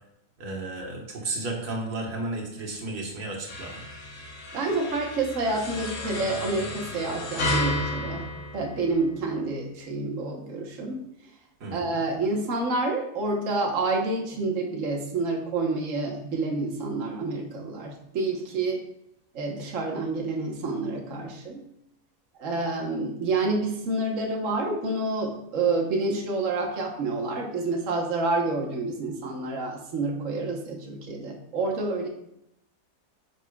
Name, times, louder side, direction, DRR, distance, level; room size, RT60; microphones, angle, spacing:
voice 1, 0.4-3.8 11.6-12.0, right 2 dB, 85° right, -1 dB, 1.9 m, -33 dB
sound 1, 3.5-9.3, left 1 dB, 50° left, 1.3 m, -32 dB
voice 2, 4.5-8.2 8.5-11.0 11.7-18.8 19.3-21.6 22.4-32.1, right 3 dB, 55° right, 0 dB, 1.5 m, -28 dB
9.6 x 6.0 x 2.3 m, 0.78 s
omnidirectional pair, 1.7 m